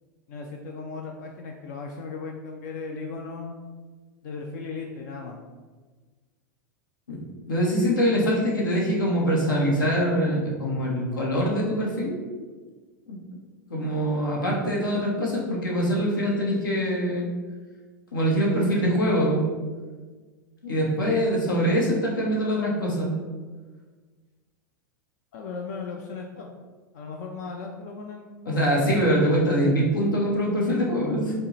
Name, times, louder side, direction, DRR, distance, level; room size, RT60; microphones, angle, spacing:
voice 1, 0.3-3.5 4.2-5.4 25.3-26.5 26.9-28.6, left 4 dB, 55° left, 2 dB, 0.4 m, -37 dB
voice 2, 7.5-12.2 13.1-13.2 13.7-17.3 18.1-19.4 20.6-23.1 28.5-31.3, equal, 80° left, -2 dB, 0.8 m, -23 dB
4.3 x 2.0 x 3.0 m, 1.4 s
figure-of-eight pair, 95°, 11 cm